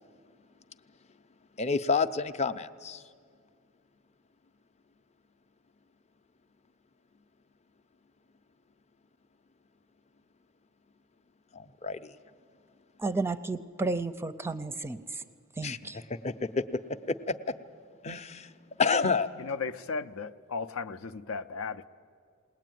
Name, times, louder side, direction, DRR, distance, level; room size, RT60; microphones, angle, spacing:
voice 1, 1.6-3.0 11.5-12.1 15.6-16.8 17.1-17.3 18.0-18.5 18.8-19.3, left 4 dB, 30° left, 11 dB, 0.6 m, -29 dB
voice 2, 13.0-15.2 15.6-16.0, right 3 dB, 10° right, 11 dB, 0.5 m, -32 dB
voice 3, 19.4-21.9, left 4 dB, 80° left, 10 dB, 0.6 m, -35 dB
20.5 x 18.5 x 9.2 m, 2.2 s
head